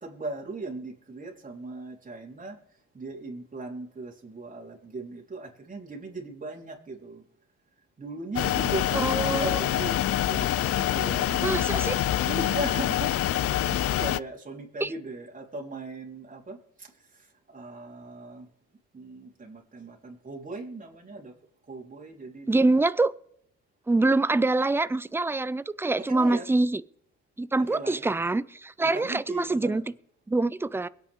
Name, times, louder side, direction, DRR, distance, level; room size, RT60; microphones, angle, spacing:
voice 1, 0.0-2.6 2.9-7.2 8.0-11.9 12.2-13.1 13.6-16.6 17.5-18.5 18.9-21.3 21.7-22.7 26.0-26.5 27.6-28.1 28.8-29.8, right 2 dB, 25° right, 3.9 m, -38 dB
sound 1, 8.4-14.2, left 13 dB, 50° left, 0.4 m, -26 dB
voice 2, 9.0-9.6 11.4-12.0 14.8-14.9 22.5-23.1 23.9-26.8 27.4-29.8 30.3-30.9, right 2 dB, 10° right, 0.5 m, -25 dB
23.0 x 8.7 x 3.6 m
cardioid pair, 90°, 30 cm